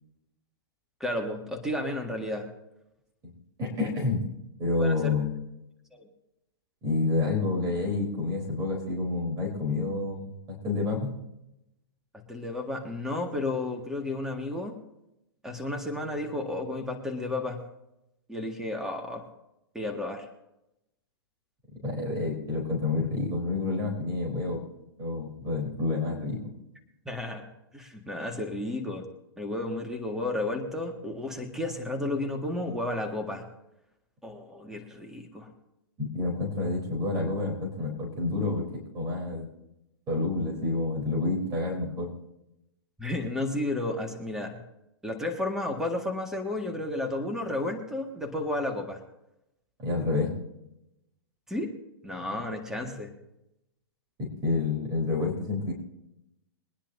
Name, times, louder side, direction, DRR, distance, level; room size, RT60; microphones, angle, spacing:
voice 1, 1.0-2.5 4.8-5.1 5.9-6.1 12.3-14.8 15.4-17.6 18.3-19.3 19.7-20.3 27.1-27.4 27.7-29.1 29.4-33.5 34.2-35.5 43.0-44.6 45.0-49.0 51.5-51.7 52.0-53.1, left 2 dB, 5° right, 2 dB, 1.9 m, -32 dB
voice 2, 3.6-4.2 4.6-5.3 6.8-11.2 21.8-24.6 25.0-26.4 36.0-38.7 38.9-39.5 40.1-42.1 49.8-50.3 54.2-55.7, left 3 dB, 30° right, 0 dB, 3.9 m, -29 dB
23.0 x 10.0 x 2.7 m, 0.87 s
hypercardioid pair, 120°, 13 cm